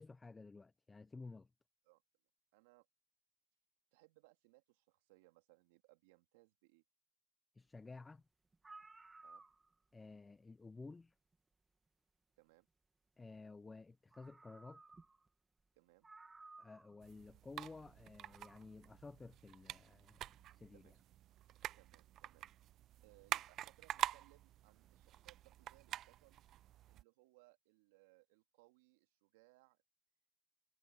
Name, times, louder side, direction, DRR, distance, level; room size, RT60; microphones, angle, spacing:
voice 1, 0.0-1.5 7.6-8.2 9.9-11.1 13.2-14.8 16.6-20.8, left 3 dB, 15° left, 1.1 m, -54 dB
voice 2, 2.5-2.9 3.9-6.8 9.2-9.4 12.4-12.7 15.7-16.1 20.7-20.9 21.8-22.5 23.0-26.4 26.9-29.8, right 23 dB, 75° right, 2.7 m, -68 dB
sound 1, 8.2-8.3 8.5-9.9 11.3-11.4 13.7-13.8 14.1-15.3 15.6-15.7 16.0-17.0 18.0-18.7, right 3 dB, 15° right, 2.5 m, -59 dB
sound 2, 17.0-27.0, right 12 dB, 45° right, 0.7 m, -47 dB
hypercardioid pair, 95°, 0 cm